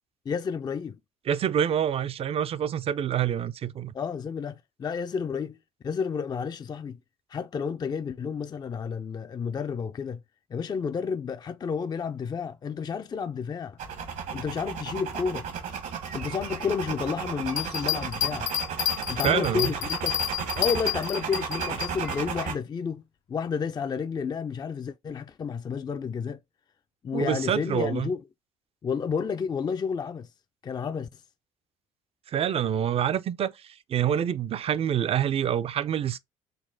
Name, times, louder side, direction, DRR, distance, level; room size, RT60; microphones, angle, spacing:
voice 1, 0.3-1.0 3.9-5.6 5.8-7.0 7.3-10.2 10.5-13.8 14.3-15.5 16.1-18.5 19.1-20.2 20.5-23.0 23.3-26.4 27.0-28.2 28.8-30.3 30.6-31.2, left 6 dB, 30° left, 0.4 m, -31 dB
voice 2, 1.3-3.9 19.2-19.7 27.1-28.1 32.3-36.2, right 9 dB, 45° right, 0.5 m, -27 dB
sound 1, 13.8-22.6, right 6 dB, 65° right, 1.1 m, -34 dB
sound 2, 17.5-21.9, left 11 dB, 75° left, 0.6 m, -29 dB
4.0 x 2.1 x 3.8 m
hypercardioid pair, 65°, 14 cm